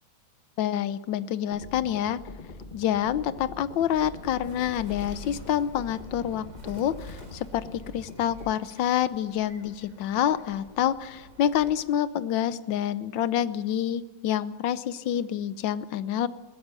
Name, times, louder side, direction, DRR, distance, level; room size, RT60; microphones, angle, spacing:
voice 1, 0.6-2.2 2.7-16.3, left 10 dB, 65° left, 15 dB, 1.4 m, -27 dB
sound 1, 1.5-8.5, left 3 dB, 30° left, 1.0 m, -44 dB
Bird, 3.6-11.9, left 1 dB, 35° right, 4.5 m, -48 dB
21.5 x 16.0 x 9.0 m, 1.3 s
omnidirectional pair, 2.4 m